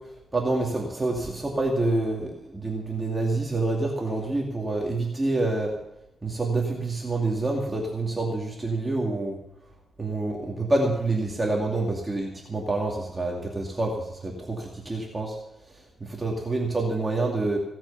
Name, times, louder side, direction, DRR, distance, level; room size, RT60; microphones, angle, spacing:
voice 1, 0.3-5.8 6.2-9.4 10.0-15.4 16.0-17.6, right 2 dB, 20° right, -1 dB, 2.5 m, -27 dB
17.0 x 9.0 x 7.0 m, 0.89 s
cardioid pair, 110°, 0 cm